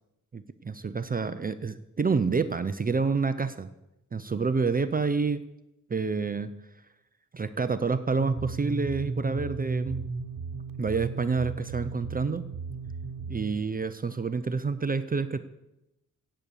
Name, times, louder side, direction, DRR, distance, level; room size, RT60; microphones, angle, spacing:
voice 1, 0.3-3.7 4.1-5.4 5.9-6.5 7.3-10.1 10.8-12.5 13.3-15.4, right 4 dB, 25° right, 11 dB, 0.5 m, -28 dB
sound 1, 8.2-13.5, right 4 dB, 80° right, 1.1 m, -35 dB
16.5 x 8.2 x 7.1 m, 0.90 s
wide cardioid pair, 165°, 32 cm